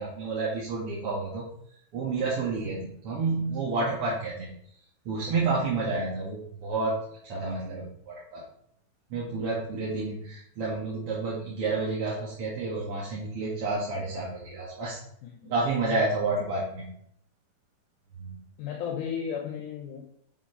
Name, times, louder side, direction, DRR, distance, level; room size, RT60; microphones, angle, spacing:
voice 1, 0.0-1.5 1.9-4.5 5.1-7.0 7.2-8.4 9.1-15.0 15.4-17.0 18.2-18.4, right 3 dB, 50° right, -5 dB, 2.1 m, -30 dB
voice 2, 15.2-15.6 18.6-20.1, left 7 dB, 70° left, 1 dB, 2.2 m, -34 dB
7.0 x 5.7 x 5.6 m, 0.69 s
omnidirectional pair, 4.3 m